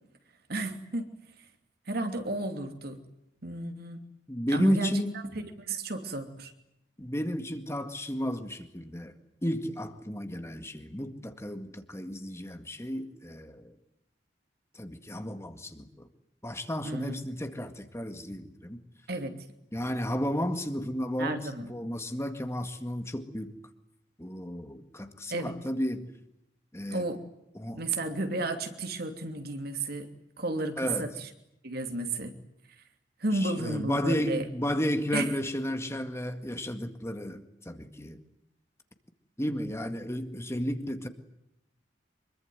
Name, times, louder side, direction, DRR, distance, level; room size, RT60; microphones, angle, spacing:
voice 1, 0.5-1.1 1.9-3.0 3.4-4.0 4.5-6.5 16.8-17.2 19.1-19.4 21.2-21.7 25.3-25.5 26.9-27.2 27.7-30.1 30.4-31.3 31.6-32.3 33.2-34.4 35.1-35.3, right 2 dB, 60° right, 6 dB, 2.9 m, -32 dB
voice 2, 4.3-5.1 7.0-9.1 9.4-13.8 14.7-16.1 16.4-18.8 19.7-23.5 24.2-26.1 26.7-27.1 27.6-27.8 30.8-31.1 33.3-38.2 39.4-41.1, equal, 15° left, 7 dB, 2.0 m, -33 dB
25.0 x 23.0 x 9.4 m, 0.82 s
head